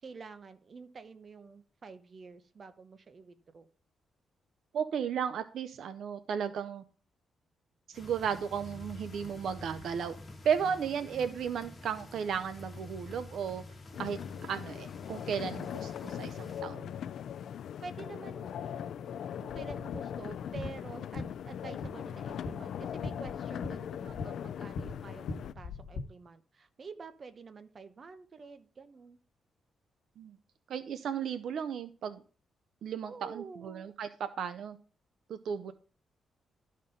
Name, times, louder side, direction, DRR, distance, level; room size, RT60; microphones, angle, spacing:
voice 1, 0.0-3.7 11.0-11.4 17.8-29.2 33.1-33.9, right 4 dB, 35° right, 10 dB, 0.9 m, -48 dB
voice 2, 4.7-6.8 7.9-10.2 10.4-13.6 14.0-16.9 30.2-30.4 30.7-32.2 32.8-34.1 34.4-34.8 35.3-35.7, right 7 dB, 65° right, 11 dB, 0.6 m, -34 dB
sound 1, 7.9-16.6, left 2 dB, 25° left, 1.5 m, -48 dB
sound 2, 13.9-25.5, left 9 dB, 65° left, 0.3 m, -40 dB
sound 3, 19.5-26.0, left 3 dB, 85° left, 1.2 m, -42 dB
12.5 x 4.4 x 5.1 m, 0.40 s
cardioid pair, 150°, 0 cm